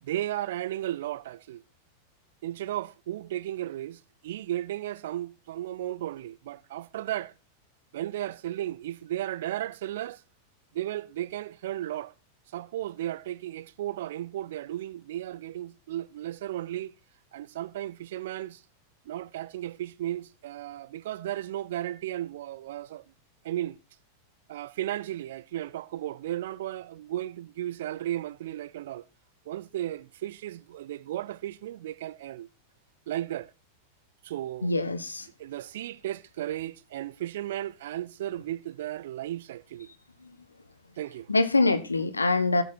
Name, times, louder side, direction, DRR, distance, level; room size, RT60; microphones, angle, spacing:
voice 1, 0.0-1.6 2.4-7.3 7.9-10.2 10.7-12.1 12.5-16.9 17.3-18.6 19.1-23.0 23.4-23.8 24.5-29.1 29.5-32.5 33.1-33.5 34.2-34.7 35.4-39.9 41.0-41.3, right 13 dB, 55° right, 0.6 m, -35 dB
voice 2, 34.6-35.3 40.2-40.3 41.3-42.6, left 3 dB, 80° left, 1.0 m, -24 dB
15.0 x 8.1 x 4.3 m
figure-of-eight pair, 90°, 0 cm